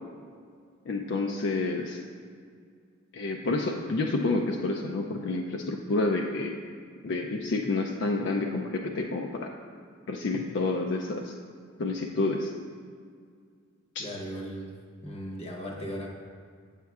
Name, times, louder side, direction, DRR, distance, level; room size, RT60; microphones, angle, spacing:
voice 1, 0.9-2.0 3.1-6.6 7.0-9.5 10.1-11.3 11.8-12.5 14.0-14.1, left 3 dB, 55° left, 1 dB, 0.4 m, -29 dB
voice 2, 14.0-14.7 15.0-16.1, equal, 30° left, 0 dB, 0.8 m, -37 dB
8.8 x 7.3 x 2.4 m, 2.1 s
head